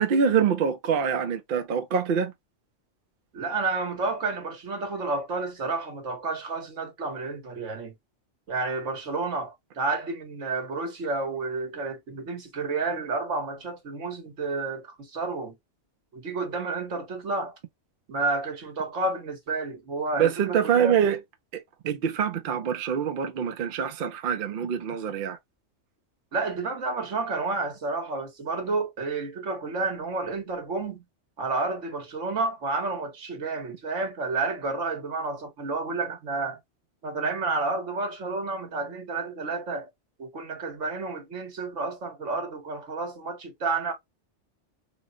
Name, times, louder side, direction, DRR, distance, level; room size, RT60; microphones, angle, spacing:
voice 1, 0.0-2.3 20.2-21.2 21.5-25.4, right 7 dB, 55° right, 0.7 m, -25 dB
voice 2, 3.3-7.9 8.5-15.6 16.1-17.5 18.1-20.9 26.3-31.0 31.4-36.6 37.0-39.9 40.2-43.9, right 3 dB, 85° right, 1.5 m, -30 dB
3.0 x 2.1 x 3.7 m
omnidirectional pair, 1.2 m